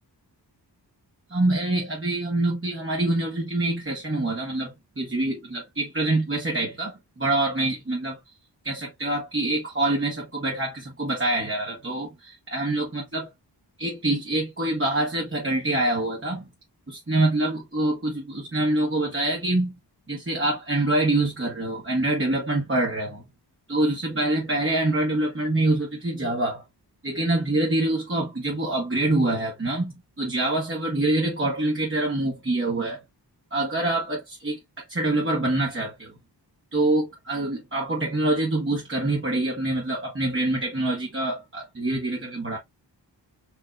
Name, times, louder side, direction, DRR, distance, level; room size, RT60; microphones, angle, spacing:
voice 1, 1.3-8.2 8.6-13.3 13.8-16.4 16.9-19.7 20.1-23.2 23.7-26.6 27.0-33.0 33.5-34.6 34.9-36.1 36.7-42.6, right 2 dB, 30° right, 1.1 m, -25 dB
4.5 x 2.7 x 2.3 m
wide cardioid pair, 80°, 42 cm